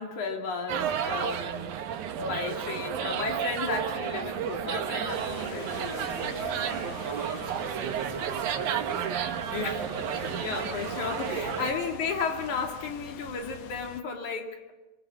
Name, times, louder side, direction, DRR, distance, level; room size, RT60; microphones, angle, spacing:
voice 1, 0.0-1.8 2.2-6.9 9.5-10.1 10.4-14.7, left 4 dB, 85° left, 2 dB, 4.1 m, -34 dB
sound 1, 0.7-11.7, right 8 dB, 85° right, 2.7 m, -32 dB
sound 2, 5.1-14.0, left 8 dB, 70° left, 2.0 m, -44 dB
voice 2, 6.8-9.2 9.8-10.2 10.5-10.7 11.3-11.8, right 6 dB, 70° right, 6 dB, 1.1 m, -39 dB
26.0 x 24.0 x 7.2 m, 1.1 s
omnidirectional pair, 3.3 m